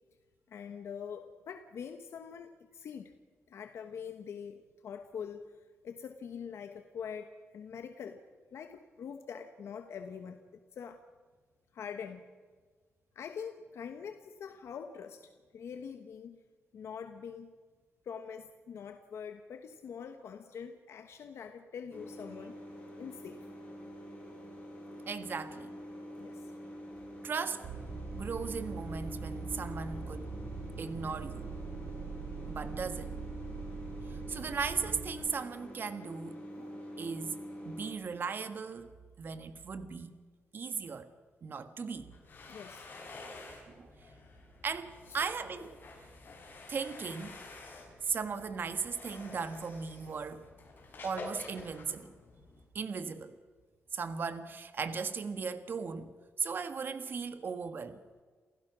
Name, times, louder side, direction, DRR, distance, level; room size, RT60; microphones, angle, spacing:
voice 1, 0.5-3.1 3.5-8.2 8.5-11.0 11.7-12.2 13.1-16.4 16.7-17.5 18.0-22.6 23.0-23.5 26.2-26.5 42.5-42.9 45.1-45.3, left 7 dB, 75° left, 7 dB, 1.2 m, -44 dB
sound 1, 21.9-37.9, equal, 25° left, 7.2 m, -46 dB
voice 2, 25.1-25.7 27.2-27.6 28.1-30.3 30.8-31.5 32.5-33.2 34.1-37.3 37.6-38.9 39.2-40.1 40.5-41.1 41.4-42.1 43.7-43.9 44.6-45.7 46.7-47.4 48.0-50.5 51.0-52.2 52.7-53.4 53.9-56.1 56.4-58.0, right 5 dB, 50° right, 10 dB, 1.5 m, -37 dB
sound 2, 27.6-35.1, right 4 dB, 70° right, 4.4 m, -42 dB
sound 3, 42.0-52.6, left 2 dB, 45° left, 6.5 m, -49 dB
28.5 x 16.0 x 6.2 m, 1.5 s
wide cardioid pair, 145°, 5 cm